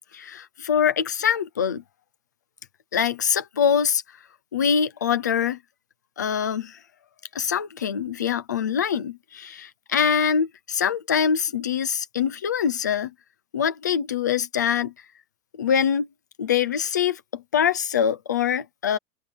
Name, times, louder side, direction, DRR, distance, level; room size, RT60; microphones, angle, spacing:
voice 1, 0.1-1.8 2.9-4.0 4.5-5.6 6.2-6.8 7.3-13.1 13.5-14.9 15.5-16.1 16.4-19.0, left 7 dB, 15° left, 0.4 m, -24 dB
open air
supercardioid pair, 175°, 44 cm